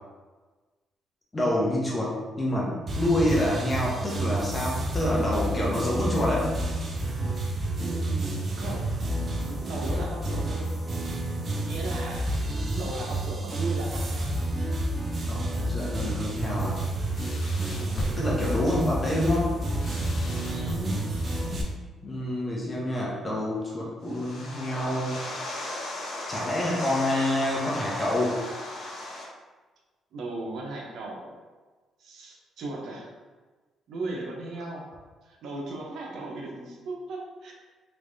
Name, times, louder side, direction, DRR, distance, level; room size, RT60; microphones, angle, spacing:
voice 1, 1.3-6.5 15.3-16.8 18.2-19.5 22.0-25.2 26.3-28.4, left 1 dB, 25° left, -5 dB, 0.9 m, -27 dB
sound 1, 2.9-21.6, right 1 dB, 40° right, 0.6 m, -30 dB
voice 2, 5.1-6.0 7.7-8.8 9.4-10.6 11.5-12.3 12.7-14.3 17.6-18.1 20.5-21.0 30.1-31.3 32.0-33.1 33.9-34.9 35.2-37.5, right 2 dB, 75° right, -1 dB, 0.7 m, -37 dB
sound 2, 16.5-21.7, left 2 dB, 55° left, 0.4 m, -37 dB
sound 3, 24.0-29.3, left 2 dB, 75° left, 0.9 m, -36 dB
3.3 x 3.1 x 2.6 m, 1.3 s
cardioid pair, 90°, 0 cm